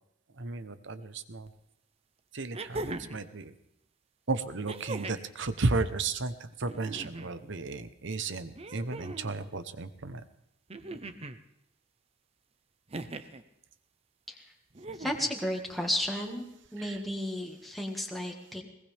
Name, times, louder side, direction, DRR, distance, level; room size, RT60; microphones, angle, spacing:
voice 1, 0.4-1.5 2.3-3.5 4.3-10.2 16.8-17.0, right 3 dB, 65° right, 12 dB, 1.0 m, -34 dB
sound 1, 1.5-1.6 2.5-3.2 4.7-5.3 6.6-7.3 8.5-9.3 10.7-11.4 12.9-13.4 14.7-15.3 16.6-16.7, right 2 dB, 30° right, 0.8 m, -40 dB
voice 2, 15.0-16.4 16.7-18.6, left 1 dB, ahead, 0 dB, 1.9 m, -33 dB
21.5 x 19.0 x 3.5 m, 0.80 s
head